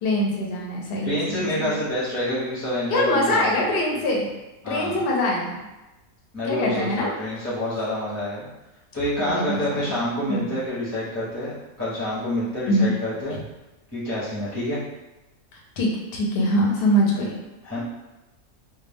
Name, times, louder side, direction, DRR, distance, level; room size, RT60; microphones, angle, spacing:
voice 1, 0.0-1.8 2.9-4.3 4.7-5.6 6.4-7.1 9.2-10.0 10.3-10.5 12.7-12.9 13.3-13.4 15.5-17.4, left 1 dB, 55° left, -2 dB, 0.7 m, -23 dB
voice 2, 1.0-3.6 4.6-5.0 6.3-8.5 8.9-13.4 13.9-14.8 17.6-17.8, left 1 dB, 15° left, -10 dB, 0.6 m, -27 dB
2.2 x 2.1 x 3.3 m, 1.0 s
omnidirectional pair, 1.4 m